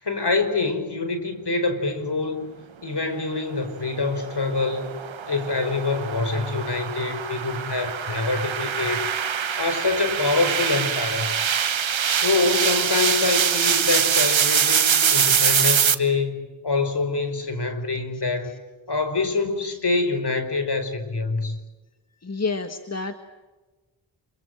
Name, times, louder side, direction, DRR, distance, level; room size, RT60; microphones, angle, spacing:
voice 1, 0.0-2.5 2.8-4.9 5.2-11.3 12.1-18.5 18.9-21.6, left 3 dB, 60° left, 8 dB, 4.8 m, -25 dB
sound 1, 3.9-15.9, right 7 dB, 80° right, 1.3 m, -23 dB
voice 2, 22.2-23.1, left 4 dB, 35° left, 7 dB, 1.7 m, -28 dB
27.0 x 24.0 x 7.7 m, 1.2 s
cardioid pair, 45°, 46 cm